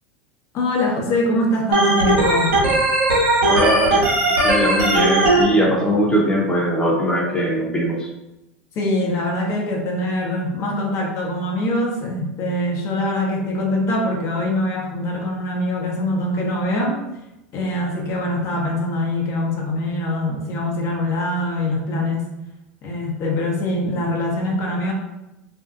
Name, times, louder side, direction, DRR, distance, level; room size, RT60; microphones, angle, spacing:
voice 1, 0.5-2.6 8.8-17.0 17.5-22.3 22.8-24.9, left 1 dB, 45° left, -1 dB, 0.8 m, -23 dB
Organ, 1.7-5.4, right 2 dB, 75° right, 1.0 m, -17 dB
voice 2, 3.5-4.1 4.4-8.1, equal, 15° left, -3 dB, 0.8 m, -20 dB
2.6 x 2.3 x 2.5 m, 0.95 s
hypercardioid pair, 90°, 7 cm